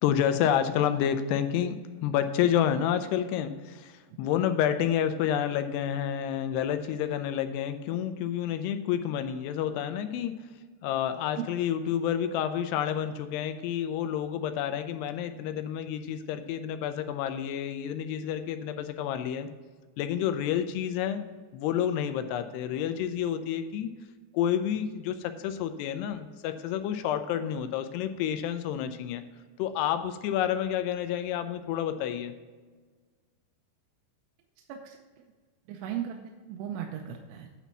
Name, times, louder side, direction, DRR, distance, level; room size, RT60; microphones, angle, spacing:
voice 1, 0.0-10.4 10.8-19.5 20.0-21.2 21.5-23.9 24.3-29.2 29.6-32.4, left 9 dB, 80° left, 9 dB, 2.6 m, -29 dB
voice 2, 35.7-37.5, right 9 dB, 90° right, 2 dB, 2.8 m, -37 dB
9.1 x 4.2 x 7.1 m, 1.4 s
omnidirectional pair, 5.0 m